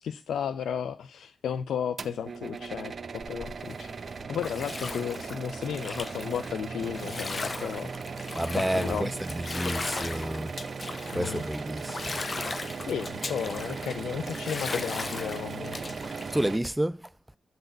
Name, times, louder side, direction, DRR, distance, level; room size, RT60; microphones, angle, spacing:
voice 1, 0.0-3.9 4.3-7.9 8.6-9.1 11.1-11.5 12.9-15.9, left 8 dB, 85° left, 0.4 m, -34 dB
sound 1, 2.0-16.6, right 5 dB, 55° right, 0.6 m, -38 dB
Bathtub (filling or washing), 3.2-16.7, left 3 dB, 45° left, 0.6 m, -38 dB
voice 2, 8.3-10.6 11.1-12.2 16.3-17.1, right 1 dB, 10° right, 0.3 m, -30 dB
8.8 x 4.0 x 6.6 m
cardioid pair, 50°, 0 cm